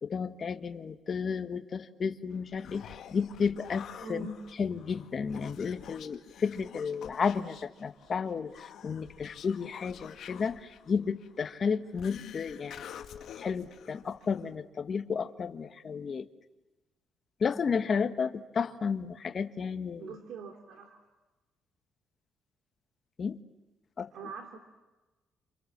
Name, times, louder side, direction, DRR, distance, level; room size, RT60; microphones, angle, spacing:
voice 1, 0.0-4.3 4.6-16.3 17.4-20.1 23.2-23.4 24.0-24.1, left 6 dB, 40° left, 8 dB, 1.5 m, -32 dB
Human voice, 2.3-14.5, left 9 dB, 65° left, 1.8 m, -49 dB
voice 2, 4.0-4.3 20.0-21.0 24.1-24.6, right 3 dB, 75° right, 4 dB, 3.3 m, -42 dB
28.5 x 28.0 x 7.4 m, 1.1 s
cardioid pair, 125°, 0 cm